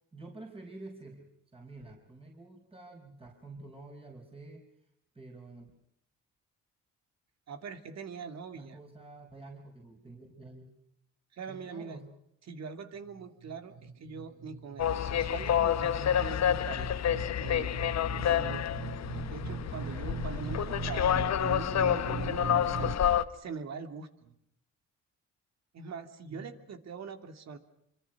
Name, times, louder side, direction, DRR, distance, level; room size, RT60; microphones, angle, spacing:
voice 1, 0.1-1.2 1.5-4.6 5.1-5.7 8.5-10.7 11.5-12.1 26.3-26.5, right 2 dB, 20° right, 1 dB, 5.1 m, -48 dB
voice 2, 7.5-8.8 11.3-12.0 12.5-17.0 17.4-17.8 18.2-19.0 19.3-22.9 23.3-24.3 25.7-27.6, right 5 dB, 60° right, 7 dB, 2.8 m, -43 dB
sound 1, 13.2-22.9, right 6 dB, 80° right, 2.0 m, -40 dB
sound 2, 14.8-23.2, left 9 dB, 60° left, 1.1 m, -29 dB
26.0 x 25.5 x 6.0 m, 0.74 s
cardioid pair, 90°, 30 cm